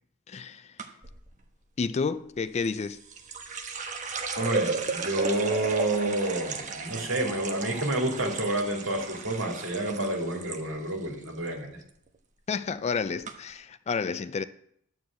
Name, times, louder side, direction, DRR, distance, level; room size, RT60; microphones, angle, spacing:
voice 1, 0.3-0.7 1.8-3.0 12.5-14.4, left 5 dB, 30° left, 0.3 m, -30 dB
sound 1, 0.8-1.2 2.6-10.6 10.9-11.5 11.8-12.2 12.8-12.9 13.2-13.3, right 4 dB, 35° right, 1.0 m, -35 dB
voice 2, 4.4-11.8, right 2 dB, 65° right, 2.6 m, -29 dB
11.0 x 4.8 x 7.5 m
head